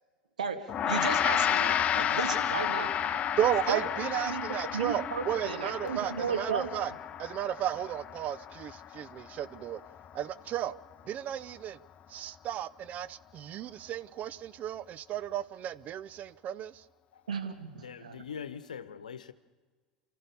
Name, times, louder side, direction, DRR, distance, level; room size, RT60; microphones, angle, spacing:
voice 1, 0.4-3.0 3.7-4.4 4.7-6.7 17.3-18.2, right 6 dB, 75° right, 1.8 m, -35 dB
Gong, 0.7-10.2, left 9 dB, 35° left, 0.6 m, -32 dB
voice 2, 3.4-6.9 7.2-9.8 10.1-10.7 11.1-11.8 12.1-16.8, right 11 dB, 40° right, 0.6 m, -34 dB
voice 3, 17.8-19.3, left 7 dB, 75° left, 1.0 m, -42 dB
29.5 x 14.0 x 6.8 m
figure-of-eight pair, 75°, 4 cm